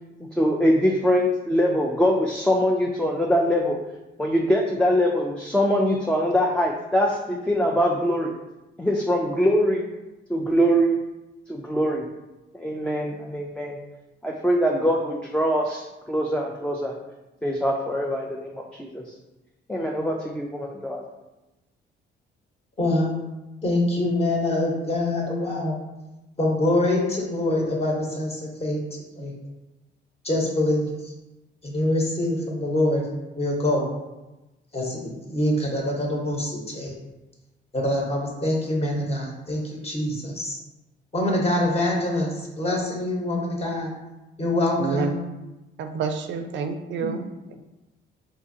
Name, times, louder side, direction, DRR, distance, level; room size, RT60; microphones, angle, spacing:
voice 1, 0.2-3.8 4.2-8.3 8.8-9.8 10.3-11.0 11.5-12.0 12.5-13.8 14.2-17.0 17.4-19.0 19.7-21.0, equal, 5° left, -1 dB, 0.3 m, -23 dB
voice 2, 22.8-23.2 23.6-25.7 26.4-28.8 29.2-29.3 30.2-31.1 31.6-33.0 33.4-33.9 34.7-36.9 37.7-40.6 41.1-43.9 44.4-45.2 46.9-47.1, left 1 dB, 30° left, -2 dB, 1.0 m, -25 dB
voice 3, 44.8-45.2 45.8-47.3, right 5 dB, 70° right, 6 dB, 0.4 m, -28 dB
3.8 x 2.7 x 2.6 m, 1.0 s
cardioid pair, 90°, 20 cm